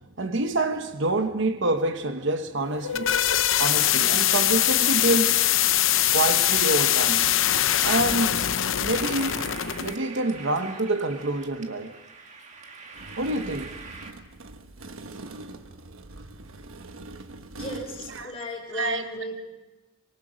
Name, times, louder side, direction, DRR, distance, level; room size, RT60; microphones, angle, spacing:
voice 1, 0.2-3.2 3.6-5.5 6.1-7.3 7.8-8.4 8.8-12.0 13.2-13.8 18.1-18.3 18.7-19.0, right 2 dB, 60° right, 1.0 m, -27 dB
sound 1, 2.6-9.9, left 11 dB, 70° left, 0.8 m, -22 dB
sound 2, 8.9-14.1, right 4 dB, 35° right, 1.8 m, -43 dB
sound 3, 12.9-18.2, right 2 dB, 90° right, 1.2 m, -42 dB
voice 2, 17.5-19.5, left 1 dB, 30° left, 5.2 m, -36 dB
25.0 x 23.5 x 5.1 m
head